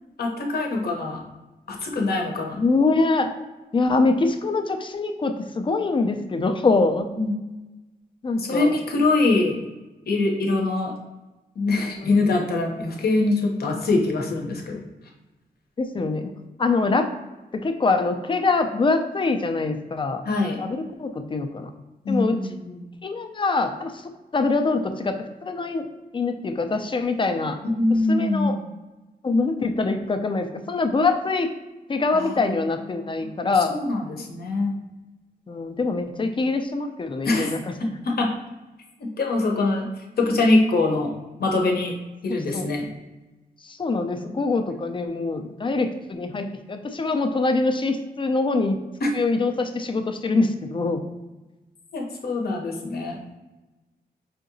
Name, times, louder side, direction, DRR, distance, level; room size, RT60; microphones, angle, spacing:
voice 1, 0.2-1.2 1.7-2.6 7.1-7.3 8.4-9.6 10.1-10.9 11.6-14.8 20.2-20.6 22.0-22.9 27.6-28.6 32.1-32.6 32.9-34.7 37.2-37.5 37.8-38.3 39.0-41.1 41.4-42.0 42.2-42.9 49.0-49.1 51.9-53.2, left 2 dB, 70° left, 1 dB, 0.8 m, -23 dB
voice 2, 2.6-3.3 3.7-7.1 8.2-8.7 12.0-12.1 15.8-16.3 16.6-17.1 17.5-20.2 20.6-21.7 22.1-22.4 23.0-23.9 24.3-25.8 26.1-27.6 28.1-28.6 29.2-31.5 31.9-33.7 35.5-37.9 42.3-42.7 43.6-48.8 49.1-51.0, left 3 dB, 30° left, 6 dB, 0.4 m, -24 dB
5.0 x 2.8 x 2.6 m, 1.1 s
wide cardioid pair, 125°, 16 cm